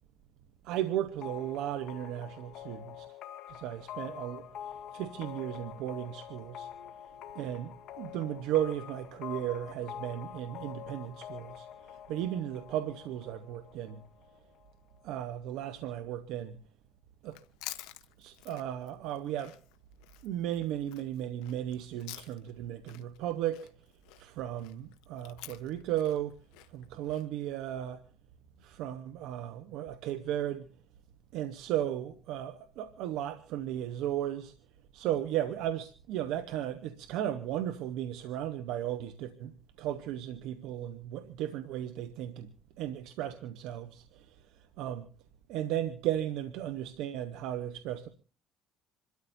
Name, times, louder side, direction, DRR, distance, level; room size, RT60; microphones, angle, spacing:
voice 1, 0.6-3.1 3.5-4.4 4.9-6.7 7.3-14.0 15.0-16.6 17.2-17.4 18.2-19.6 20.2-23.6 24.2-26.3 26.7-28.0 28.6-30.7 31.3-34.5 34.9-42.5 42.8-44.4 44.8-45.1 45.5-48.1, right 11 dB, 75° right, 1.0 m, -35 dB
sound 1, 1.2-14.7, left 10 dB, 65° left, 1.9 m, -46 dB
Chewing mastication, 17.2-22.6 22.9-27.3, left 17 dB, 85° left, 1.0 m, -49 dB
27.0 x 13.0 x 2.7 m
supercardioid pair, 95°, 0 cm